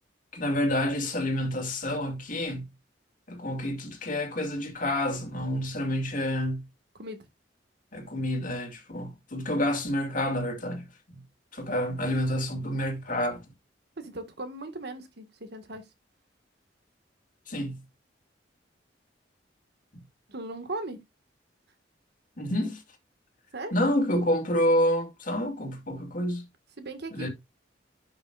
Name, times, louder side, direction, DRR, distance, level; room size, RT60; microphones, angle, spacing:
voice 1, 0.3-2.7 3.3-6.7 7.9-11.2 11.5-13.4 17.5-17.8 19.9-20.0 22.4-22.8 23.7-26.4 27.1-27.3, left 1 dB, 50° left, 2.3 m, -28 dB
voice 2, 14.0-15.8 20.3-21.0 23.5-23.7 26.8-27.3, right 2 dB, 65° right, 1.7 m, -38 dB
11.0 x 5.8 x 2.4 m
head